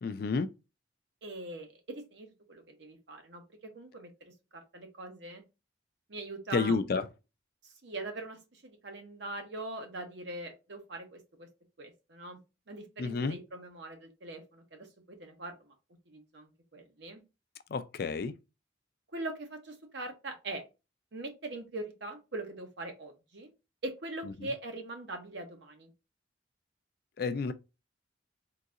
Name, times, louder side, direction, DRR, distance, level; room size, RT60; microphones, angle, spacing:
voice 1, 0.0-0.5 6.5-7.1 13.0-13.4 17.7-18.3 27.2-27.5, left 4 dB, 50° left, 0.3 m, -30 dB
voice 2, 1.2-3.4 3.7-5.4 6.1-7.0 7.6-11.5 11.8-12.4 12.7-15.7 16.1-17.2 19.1-20.6 21.1-23.5 23.8-25.9, right 2 dB, 65° right, 1.0 m, -42 dB
3.9 x 2.7 x 2.4 m
head